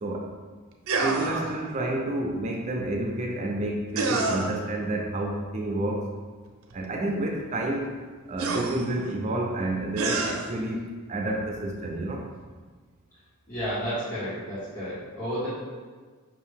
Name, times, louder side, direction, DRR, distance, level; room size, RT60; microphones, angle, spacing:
voice 1, 0.0-0.3 1.0-6.1 6.7-7.9 8.3-12.2, right 1 dB, 35° right, 0 dB, 0.4 m, -29 dB
sound 1, 0.9-1.6 4.0-4.6 6.7-6.8 8.4-9.1 10.0-10.5, right 3 dB, 80° right, 0.5 m, -28 dB
voice 2, 13.5-15.5, equal, 45° left, -15 dB, 1.5 m, -32 dB
5.3 x 2.7 x 3.5 m, 1.5 s
head